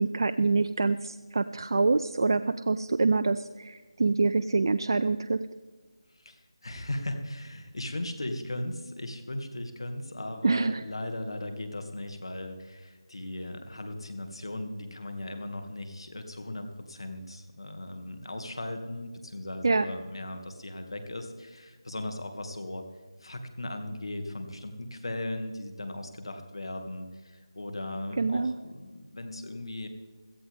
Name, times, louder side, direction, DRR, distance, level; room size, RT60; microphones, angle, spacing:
voice 1, 0.0-5.4 10.4-10.8 19.6-19.9 28.2-28.5, right 3 dB, 55° right, 11 dB, 0.5 m, -26 dB
voice 2, 6.1-22.8 23.2-29.9, left 1 dB, 70° left, 5 dB, 2.3 m, -37 dB
17.0 x 13.5 x 3.6 m, 1.4 s
figure-of-eight pair, 165°, 3 cm